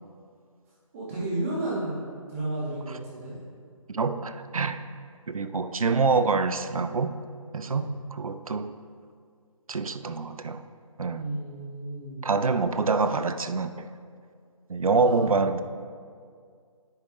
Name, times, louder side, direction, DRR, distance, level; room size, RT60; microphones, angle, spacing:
voice 1, 0.9-3.3 7.6-7.9 11.1-12.2 14.9-15.4, right 2 dB, 25° right, -8 dB, 1.6 m, -33 dB
voice 2, 3.9-4.8 5.3-7.1 7.5-8.7 9.7-10.6 11.0-11.2 12.2-13.9 14.7-15.6, right 4 dB, 80° right, 11 dB, 0.5 m, -26 dB
9.7 x 6.2 x 2.6 m, 2.2 s
figure-of-eight pair, 155°, 18 cm